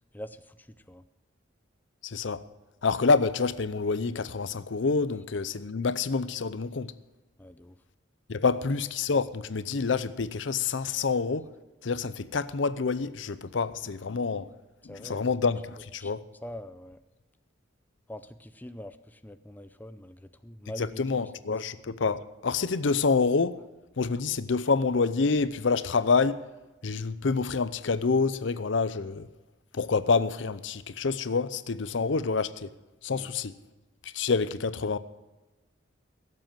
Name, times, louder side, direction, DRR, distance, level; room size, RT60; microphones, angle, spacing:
voice 1, 0.1-1.0 7.4-7.8 14.8-15.2 16.0-16.1 16.4-17.0 18.1-21.3 33.1-33.3, left 1 dB, 10° left, 0.5 m, -44 dB
voice 2, 2.0-2.4 2.8-6.9 8.3-11.5 11.8-14.5 14.8-16.2 20.8-23.6 24.0-26.4 26.8-29.3 29.7-32.7 33.0-33.5 34.0-35.0, left 4 dB, 70° left, 0.6 m, -27 dB
16.5 x 7.7 x 7.6 m
head